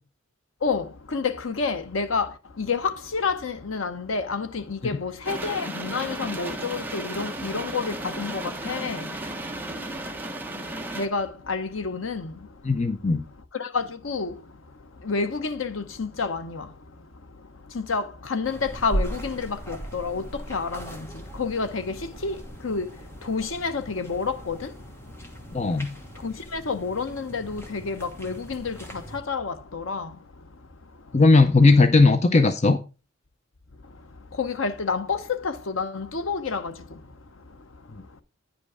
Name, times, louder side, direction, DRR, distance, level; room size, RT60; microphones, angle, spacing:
voice 1, 1.1-2.3 2.6-9.0 10.9-12.3 13.6-14.3 15.1-16.6 17.7-18.0 18.3-20.2 20.5-20.9 21.4-21.9 22.2-22.3 22.6-22.9 23.3-24.6 26.2-28.8 29.3-30.1 34.4-35.2 35.4-36.7, left 4 dB, 85° left, 0.9 m, -29 dB
sound 1, 5.2-11.1, right 1 dB, 10° right, 0.9 m, -34 dB
voice 2, 12.6-13.2 25.5-25.9 31.1-32.8, left 3 dB, 35° left, 0.6 m, -17 dB
sound 2, 18.4-29.2, right 1 dB, 15° left, 1.3 m, -38 dB
9.6 x 5.3 x 4.7 m
head